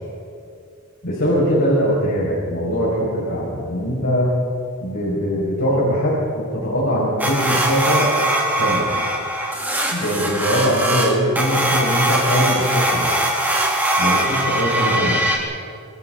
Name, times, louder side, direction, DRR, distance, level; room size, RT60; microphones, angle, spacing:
voice 1, 1.0-4.3 4.8-8.1 8.6-8.9 9.9-13.1 14.0-15.2, equal, 65° left, -6 dB, 6.5 m, -21 dB
sound 1, 7.2-15.4, right 1 dB, 10° right, 3.5 m, -21 dB
28.0 x 28.0 x 4.1 m, 2.3 s
head